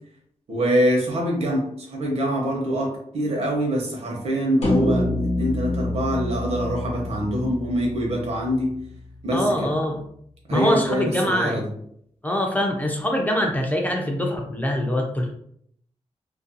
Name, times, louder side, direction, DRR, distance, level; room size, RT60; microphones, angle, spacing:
voice 1, 0.5-5.1 5.4-8.8 9.2-9.7 10.5-11.7, equal, 65° right, -1 dB, 0.8 m, -24 dB
sound 1, 4.6-9.1, left 1 dB, 70° left, 0.8 m, -27 dB
voice 2, 9.3-10.0 10.5-11.6 12.2-15.3, left 1 dB, 15° left, 1 dB, 0.3 m, -23 dB
2.4 x 2.2 x 2.6 m, 0.67 s
wide cardioid pair, 155°, 12 cm